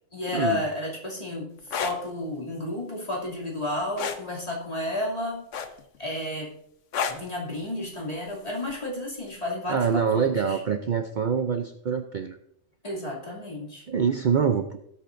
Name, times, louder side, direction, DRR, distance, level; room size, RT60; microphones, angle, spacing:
voice 1, 0.1-5.4 6.0-6.5 7.1-10.6 12.8-13.8, left 1 dB, 30° left, -4 dB, 2.9 m, -32 dB
sound 1, 1.6-2.0 4.0-4.2 5.5-6.0 6.9-7.3 8.7-8.9, left 7 dB, 85° left, 1.2 m, -29 dB
voice 2, 9.7-12.4 13.9-14.8, right 6 dB, 50° right, 7 dB, 0.6 m, -25 dB
18.0 x 8.3 x 2.6 m, 0.75 s
omnidirectional pair, 1.2 m